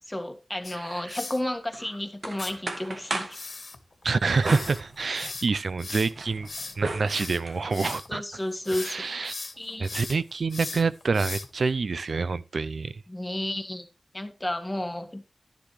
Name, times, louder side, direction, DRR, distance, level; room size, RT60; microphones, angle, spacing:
voice 1, 0.1-3.5 8.1-9.1 9.6-9.9 13.1-13.9 14.1-15.2, left 1 dB, 15° left, 1.6 m, -32 dB
sound 1, 0.6-1.4 2.4-2.5 3.3-8.1 8.5-9.0 9.2-11.7, left 3 dB, 60° left, 1.5 m, -38 dB
sound 2, 1.7-3.4 4.4-5.5 5.9-7.6, right 2 dB, 65° right, 1.6 m, -36 dB
voice 2, 4.0-6.5 6.8-8.2 8.7-9.3 9.8-13.0, right 4 dB, 80° right, 0.4 m, -27 dB
11.5 x 10.0 x 3.1 m
wide cardioid pair, 70°, 0 cm